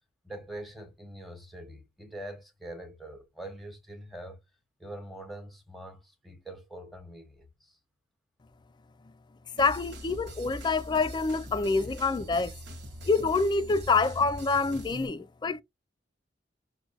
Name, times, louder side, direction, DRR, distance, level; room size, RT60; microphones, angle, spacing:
voice 1, 0.2-4.4 4.8-7.8 12.1-12.2, right 1 dB, ahead, 1.0 m, -44 dB
voice 2, 9.5-12.5 13.1-15.6, left 4 dB, 25° left, 0.4 m, -26 dB
sound 1, 9.6-15.1, equal, 65° right, 1.0 m, -42 dB
5.7 x 2.2 x 2.6 m
head